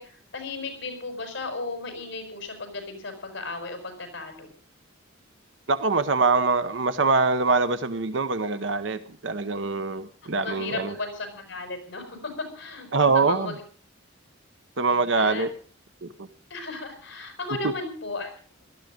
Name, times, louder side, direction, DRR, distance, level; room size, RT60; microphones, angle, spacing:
voice 1, 0.0-4.5 10.2-13.6 14.9-15.4 16.5-18.3, left 3 dB, 60° left, 6.0 m, -35 dB
voice 2, 5.7-10.9 12.9-13.5 14.8-15.5 16.0-16.1, right 4 dB, 65° right, 0.9 m, -24 dB
18.0 x 13.5 x 5.2 m
head